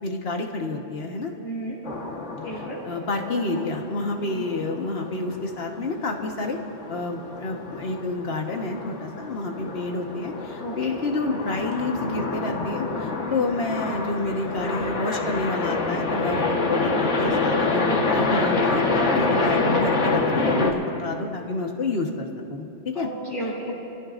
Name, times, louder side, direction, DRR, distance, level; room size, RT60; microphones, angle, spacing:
voice 1, 0.0-1.3 2.5-6.6 6.9-23.1, left 2 dB, 60° left, 2 dB, 1.5 m, -29 dB
voice 2, 1.4-1.8 2.4-2.8 4.3-4.5 10.6-10.7 13.2-13.4 19.1-19.5 22.9-23.7, right 1 dB, 45° left, -11 dB, 4.3 m, -33 dB
sound 1, 1.8-20.7, left 3 dB, 80° left, 1.7 m, -27 dB
28.0 x 16.0 x 2.6 m, 2.8 s
omnidirectional pair, 1.2 m